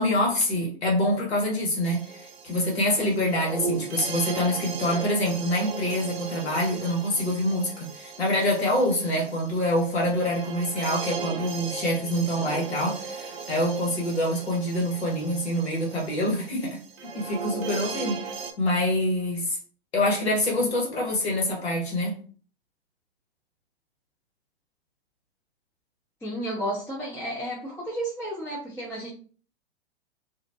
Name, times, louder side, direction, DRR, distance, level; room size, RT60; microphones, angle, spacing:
voice 1, 0.0-16.8 17.1-18.2 18.6-19.6 19.9-22.1, left 1 dB, 75° left, 1.3 m, -26 dB
sound 1, 1.8-18.5, right 5 dB, 65° right, 0.6 m, -37 dB
voice 2, 26.2-29.1, right 1 dB, 10° left, 0.6 m, -32 dB
2.5 x 2.1 x 2.6 m
figure-of-eight pair, 105°, 32 cm